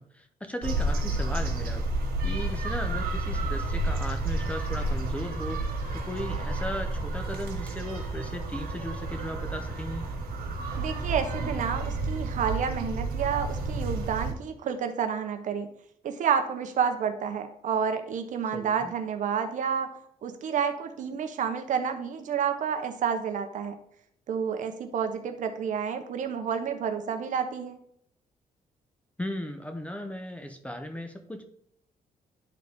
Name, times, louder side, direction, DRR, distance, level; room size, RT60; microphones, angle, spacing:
voice 1, 0.0-1.8 2.2-5.6 5.9-10.0 18.5-18.9 29.2-31.5, left 1 dB, 10° left, 6 dB, 0.6 m, -36 dB
sound 1, 0.6-14.3, right 2 dB, 85° right, 1.7 m, -31 dB
voice 2, 10.8-15.7 16.0-19.9 20.2-23.8 24.3-27.8, right 7 dB, 60° right, 7 dB, 0.8 m, -29 dB
10.5 x 3.9 x 3.5 m, 0.71 s
cardioid pair, 145°, 15 cm